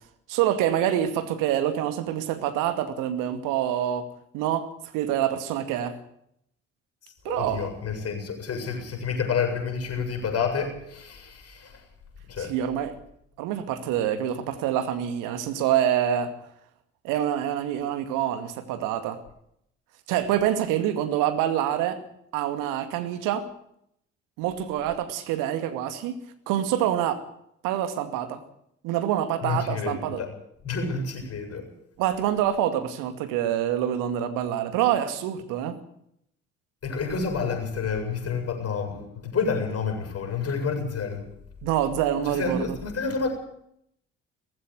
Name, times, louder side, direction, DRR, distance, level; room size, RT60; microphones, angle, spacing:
voice 1, 0.3-4.0 4.3-4.7 4.9-6.0 7.2-7.7 12.4-12.9 13.4-16.3 17.0-19.2 20.1-22.0 22.3-23.5 24.4-26.2 26.5-27.2 27.6-28.4 28.8-30.2 32.0-35.8 41.6-42.8, right 11 dB, 65° right, 9 dB, 2.4 m, -26 dB
voice 2, 7.3-11.8 12.3-12.5 29.4-30.3 30.6-31.7 36.8-41.2 42.2-43.3, left 5 dB, 45° left, 5 dB, 7.6 m, -29 dB
18.5 x 15.5 x 9.5 m, 0.73 s
figure-of-eight pair, 50°, 35 cm